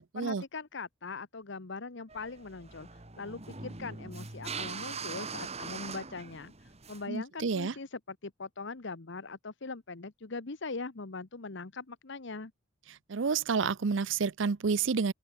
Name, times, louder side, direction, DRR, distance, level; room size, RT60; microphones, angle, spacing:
voice 1, 0.1-6.5 6.9-12.5, left 3 dB, 60° left, 1.1 m, -41 dB
sound 1, 2.1-7.1, right 4 dB, 30° right, 3.1 m, -42 dB
voice 2, 7.1-7.7 13.1-15.1, right 5 dB, 65° right, 0.6 m, -29 dB
head